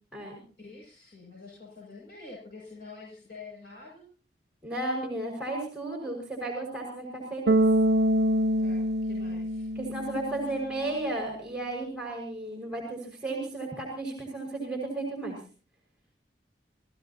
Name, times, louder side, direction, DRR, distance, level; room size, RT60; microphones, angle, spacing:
voice 1, 0.6-4.1 8.6-9.7, left 3 dB, 60° left, -3 dB, 7.4 m, -47 dB
voice 2, 4.6-7.6 9.8-15.4, right 2 dB, 5° right, -1 dB, 5.7 m, -34 dB
Bass guitar, 7.5-10.6, right 1 dB, 65° right, 0.7 m, -25 dB
29.0 x 17.0 x 2.9 m, 0.39 s
head